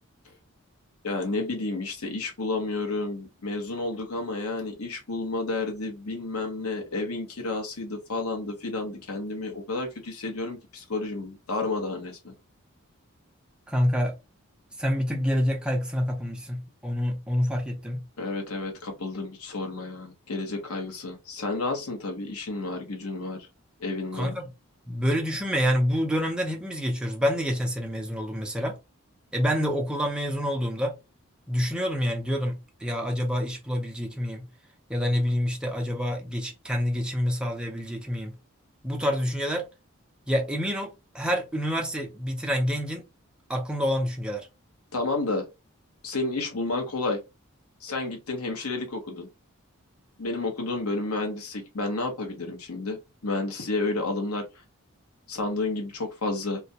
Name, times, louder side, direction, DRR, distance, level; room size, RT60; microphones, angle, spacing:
voice 1, 1.0-12.3 18.2-23.5 23.8-24.4 44.9-45.5 46.0-47.2 47.8-49.3 50.2-54.5 55.3-56.6, left 2 dB, 90° left, 0.8 m, -31 dB
voice 2, 13.7-14.1 14.8-18.0 24.1-24.5 24.9-28.8 29.3-31.0 31.5-34.5 34.9-38.3 38.8-39.7 40.3-43.0 43.5-44.5, equal, 5° right, 0.5 m, -27 dB
2.3 x 2.1 x 2.7 m
head